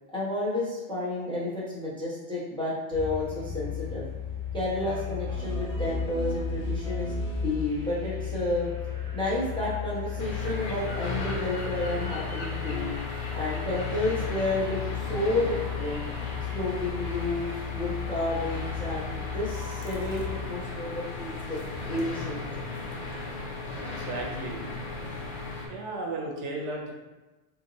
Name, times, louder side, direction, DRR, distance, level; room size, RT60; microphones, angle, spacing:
voice 1, 0.1-4.1 4.5-8.7 9.1-12.9 13.3-14.8 15.1-16.0 16.5-17.5 17.7-22.4, left 2 dB, 5° left, -7 dB, 0.6 m, -31 dB
sound 1, 2.9-20.4, left 8 dB, 50° right, 0.8 m, -36 dB
sound 2, 5.3-8.1, equal, 75° left, 1.0 m, -33 dB
sound 3, 10.2-25.7, left 3 dB, 55° left, 0.6 m, -36 dB
voice 2, 24.0-24.6 25.6-26.9, right 2 dB, 80° right, 0 dB, 0.9 m, -34 dB
2.9 x 2.1 x 3.8 m, 1.1 s
omnidirectional pair, 1.2 m